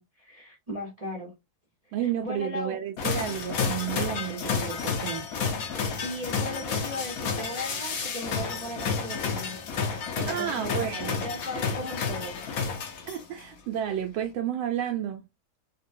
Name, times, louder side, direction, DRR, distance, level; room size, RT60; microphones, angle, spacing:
voice 1, 0.0-1.3 1.9-2.8 5.8-9.6 9.8-12.4, left 1 dB, 45° right, 0.4 m, -37 dB
voice 2, 1.9-5.3 10.3-11.2 13.1-15.2, right 10 dB, 85° right, 1.4 m, -31 dB
sound 1, 3.0-13.4, left 5 dB, 60° left, 1.0 m, -31 dB
3.9 x 2.1 x 2.6 m
omnidirectional pair, 2.1 m